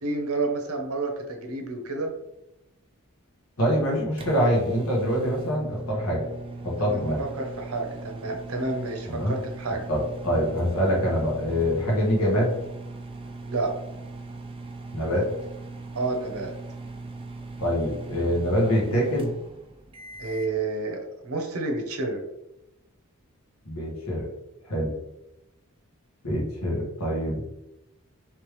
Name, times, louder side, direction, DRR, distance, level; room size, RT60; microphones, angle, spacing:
voice 1, 0.0-2.1 6.8-9.8 13.5-13.7 15.9-16.5 20.2-22.2, right 3 dB, 70° right, 3 dB, 0.8 m, -30 dB
voice 2, 3.6-6.2 6.6-7.2 9.1-9.3 9.9-12.5 14.9-15.3 17.6-19.3 23.6-24.3 24.6-24.9 26.2-27.4, equal, 75° left, -3 dB, 1.4 m, -25 dB
sound 1, 3.8-20.6, right 3 dB, 25° right, 0.4 m, -39 dB
3.3 x 3.3 x 3.1 m, 0.89 s
head